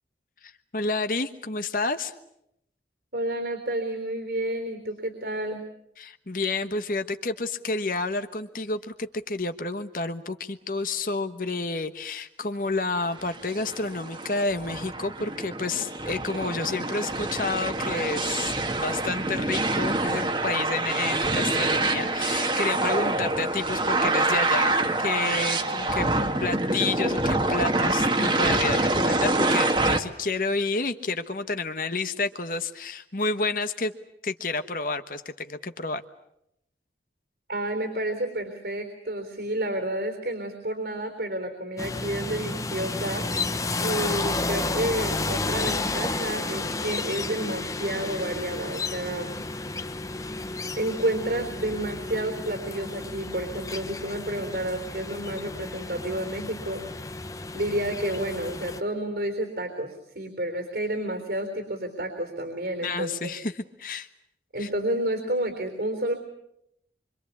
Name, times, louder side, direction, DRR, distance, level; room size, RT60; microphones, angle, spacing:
voice 1, 0.4-2.1 6.0-18.5 18.8-26.1 26.4-33.9 34.2-36.0 62.8-64.1 64.6-64.7, left 3 dB, 50° left, 9 dB, 1.2 m, -30 dB
voice 2, 3.1-5.6 37.5-43.2 43.8-49.3 50.8-56.8 57.5-63.3 64.5-66.1, right 1 dB, 65° right, 5 dB, 3.8 m, -30 dB
sound 1, 13.2-30.0, right 2 dB, 25° right, 1.6 m, -26 dB
sound 2, 41.8-58.8, left 3 dB, 20° left, 0.9 m, -32 dB
26.0 x 25.0 x 8.4 m, 0.79 s
head